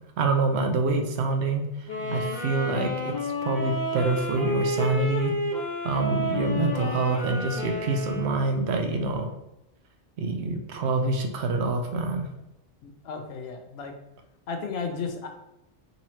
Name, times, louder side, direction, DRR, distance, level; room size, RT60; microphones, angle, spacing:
voice 1, 0.2-5.3 5.8-9.3 10.2-12.3, right 3 dB, 70° right, 5 dB, 0.8 m, -26 dB
sound 1, 1.9-8.4, left 1 dB, 45° left, 0.9 m, -31 dB
voice 2, 12.8-13.9 14.5-15.3, left 5 dB, 70° left, 5 dB, 0.8 m, -34 dB
3.8 x 3.0 x 2.7 m, 0.87 s
omnidirectional pair, 1.2 m